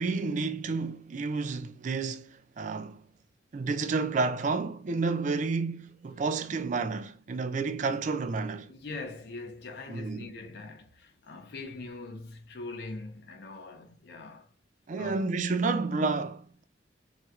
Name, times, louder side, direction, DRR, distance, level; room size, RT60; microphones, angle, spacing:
voice 1, 0.0-3.0 3.5-8.7 9.9-10.3 14.9-16.6, right 4 dB, 45° right, 0.4 m, -30 dB
voice 2, 8.7-14.5 14.9-15.3, left 3 dB, 60° left, 0.5 m, -42 dB
4.2 x 2.2 x 2.4 m
head